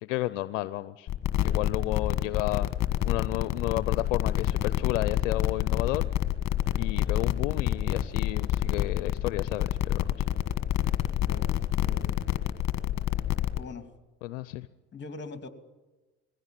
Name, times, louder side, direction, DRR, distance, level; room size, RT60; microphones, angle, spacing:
voice 1, 0.0-1.1 1.4-2.7 3.0-6.0 6.8-10.1 14.2-14.7, left 16 dB, 80° left, 15 dB, 0.7 m, -32 dB
sound 1, 1.1-13.6, left 12 dB, 45° left, 1.6 m, -27 dB
voice 2, 11.3-12.2 13.6-13.9 14.9-15.5, left 4 dB, 30° left, 8 dB, 2.7 m, -43 dB
21.0 x 16.0 x 9.2 m, 1.2 s
hypercardioid pair, 70°, 37 cm